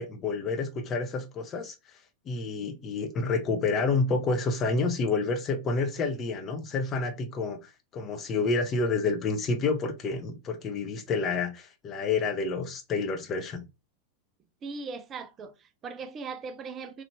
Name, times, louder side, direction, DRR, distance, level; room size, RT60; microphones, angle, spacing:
voice 1, 0.0-1.8 2.3-13.6, left 4 dB, 30° left, 0.6 m, -29 dB
voice 2, 14.6-17.0, right 4 dB, 25° right, 0.3 m, -39 dB
3.1 x 2.4 x 3.1 m
figure-of-eight pair, 90°, 0 cm